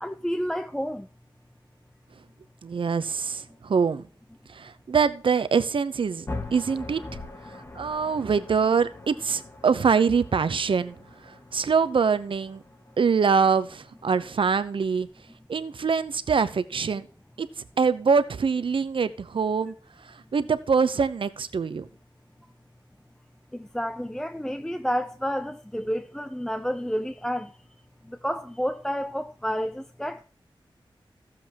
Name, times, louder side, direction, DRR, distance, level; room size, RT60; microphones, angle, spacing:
voice 1, 0.0-1.1 23.5-27.5 28.1-30.2, equal, 5° left, 0.5 m, -30 dB
voice 2, 2.6-4.0 4.5-7.0 7.7-11.0 11.2-12.6 13.0-15.1 15.5-17.1 17.4-17.5 17.8-19.7 20.0-21.9, right 5 dB, 75° right, 0.8 m, -24 dB
sound 1, 6.3-14.3, left 2 dB, 30° left, 1.2 m, -42 dB
15.0 x 7.6 x 3.0 m
wide cardioid pair, 110°, 9 cm